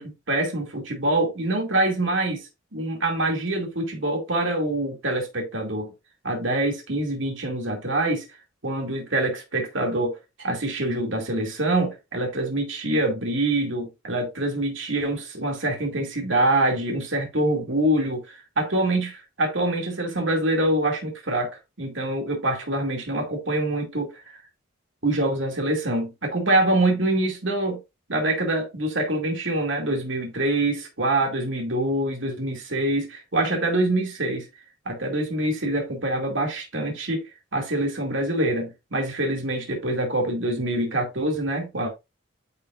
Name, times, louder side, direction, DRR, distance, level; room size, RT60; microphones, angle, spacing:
voice 1, 0.0-5.9 6.2-8.2 8.6-21.5 21.8-24.2 25.0-27.8 28.1-34.5 34.9-37.3 37.5-41.9, right 1 dB, 65° right, 2.5 m, -25 dB
9.9 x 5.6 x 2.5 m
head